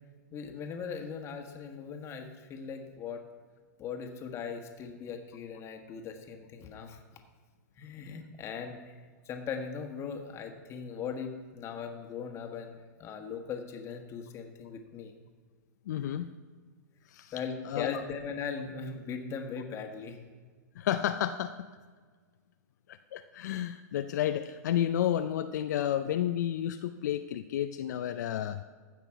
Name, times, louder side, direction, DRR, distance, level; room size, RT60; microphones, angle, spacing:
voice 1, 0.3-3.2 3.8-7.0 7.8-8.9 9.2-15.1 17.3-20.3, left 6 dB, 30° left, 5 dB, 1.4 m, -39 dB
voice 2, 15.9-16.3 17.1-17.3 17.6-18.0 20.8-21.6 22.9-28.6, left 11 dB, 65° left, 9 dB, 0.5 m, -31 dB
15.0 x 5.9 x 4.7 m, 1.5 s
hypercardioid pair, 125°, 10 cm